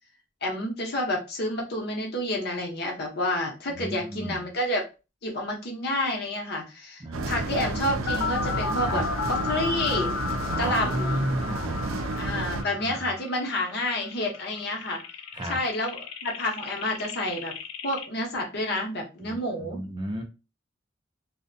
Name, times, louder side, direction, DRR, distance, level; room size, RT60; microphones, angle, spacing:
voice 1, 0.4-4.9 5.2-10.1 10.6-11.3 12.2-15.0 15.5-17.5 17.8-19.8, left 1 dB, 50° left, 0.7 m, -29 dB
voice 2, 3.7-4.5 7.0-8.0 8.8-9.0 10.5-12.1 12.3-13.1 15.3-15.6 19.2-20.2, right 1 dB, 20° right, 0.4 m, -34 dB
sound 1, 7.1-12.6, right 2 dB, 90° right, 0.4 m, -31 dB
sound 2, 8.1-18.1, left 5 dB, 85° left, 0.4 m, -34 dB
2.6 x 2.1 x 2.5 m
head